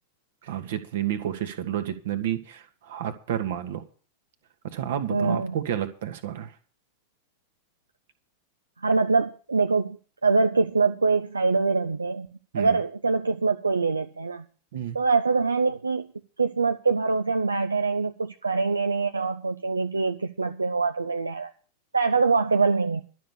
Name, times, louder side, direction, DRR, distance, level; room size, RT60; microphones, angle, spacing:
voice 1, 0.4-3.8 4.6-6.5 12.5-12.8 14.7-15.0, right 10 dB, 55° right, 1.6 m, -30 dB
voice 2, 5.1-5.5 8.8-10.0 10.2-12.3 12.6-14.4 14.9-16.1 16.4-21.5 21.9-23.0, right 4 dB, 80° right, 0.6 m, -24 dB
12.0 x 6.7 x 8.7 m
figure-of-eight pair, 90°, 0 cm